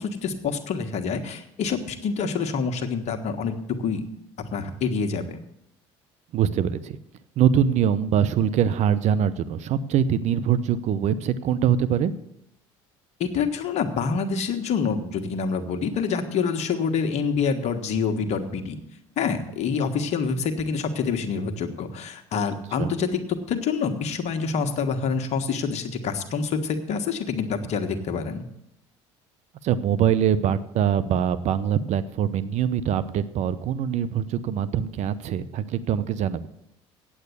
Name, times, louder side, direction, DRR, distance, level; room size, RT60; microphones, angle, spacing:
voice 1, 0.0-3.5 3.8-4.0 4.5-5.4 13.2-18.8 19.2-23.2 23.5-28.4, left 5 dB, 50° left, 6 dB, 1.5 m, -26 dB
voice 2, 6.3-7.0 7.4-12.1 22.8-22.9 29.6-36.5, right 9 dB, 55° right, 14 dB, 0.8 m, -23 dB
8.7 x 8.1 x 8.1 m, 0.80 s
hypercardioid pair, 75°, 14 cm